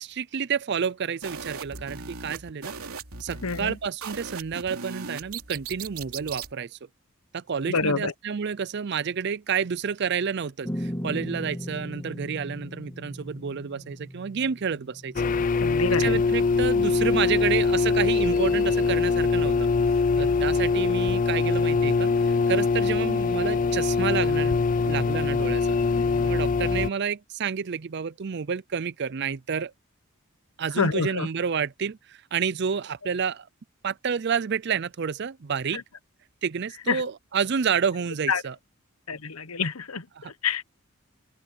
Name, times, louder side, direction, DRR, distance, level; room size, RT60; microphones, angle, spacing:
voice 1, 0.0-2.7 3.2-6.8 7.3-15.1 16.0-19.7 20.2-25.8 26.2-29.7 30.6-33.5 33.8-35.8 36.4-38.5, right 6 dB, 50° right, 0.5 m, -29 dB
sound 1, 1.2-6.5, right 5 dB, 90° right, 2.9 m, -38 dB
voice 2, 3.4-3.8 7.7-8.1 15.6-16.2 20.1-20.4 26.0-26.3 30.8-31.3 35.7-35.8 36.9-37.0 38.3-38.4 39.1-40.6, left 5 dB, 85° left, 1.2 m, -28 dB
sound 2, 10.7-15.7, equal, 15° left, 1.7 m, -37 dB
sound 3, 15.2-26.9, left 4 dB, 35° left, 0.3 m, -23 dB
open air
head